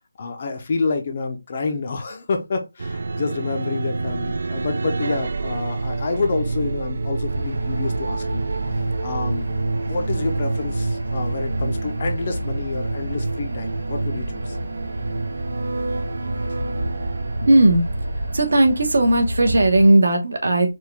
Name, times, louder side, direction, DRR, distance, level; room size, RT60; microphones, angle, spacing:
voice 1, 0.2-8.5 9.0-14.6, left 4 dB, 25° left, 0.5 m, -28 dB
sound 1, 2.8-18.4, right 3 dB, 45° right, 0.3 m, -28 dB
sound 2, 7.3-19.9, equal, 80° right, 2.3 m, -31 dB
voice 2, 17.3-17.8 18.3-20.7, right 1 dB, 65° right, 1.2 m, -16 dB
4.6 x 2.3 x 3.4 m
figure-of-eight pair, 175°, 0 cm